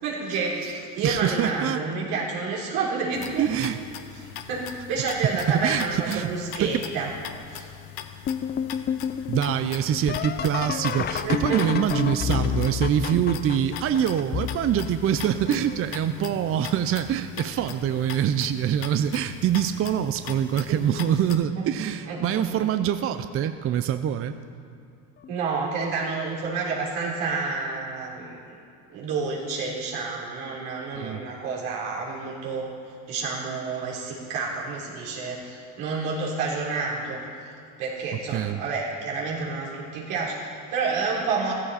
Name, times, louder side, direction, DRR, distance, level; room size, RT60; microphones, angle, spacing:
voice 1, 0.0-3.7 4.2-7.1 7.5-7.7 11.0-11.6 16.2-16.4 20.7-21.1 21.6-21.7 22.1-22.7 25.3-28.4 28.9-32.7 33.1-37.2 37.8-41.5, right 4 dB, 80° right, -4 dB, 3.8 m, -29 dB
voice 2, 1.0-1.8 3.4-3.8 5.5-6.3 6.6-6.9 9.3-24.4 31.0-31.2 38.3-38.6, right 9 dB, 35° right, 10 dB, 0.5 m, -25 dB
sound 1, 3.1-21.4, left 10 dB, 65° left, 1.0 m, -41 dB
sound 2, 8.3-15.9 16.6-17.1 17.6-18.2 19.5-19.6 20.3-20.6 22.8-22.9 25.2-25.3, left 8 dB, 25° left, 0.5 m, -30 dB
14.5 x 14.5 x 4.2 m, 2.5 s
supercardioid pair, 105°, 38 cm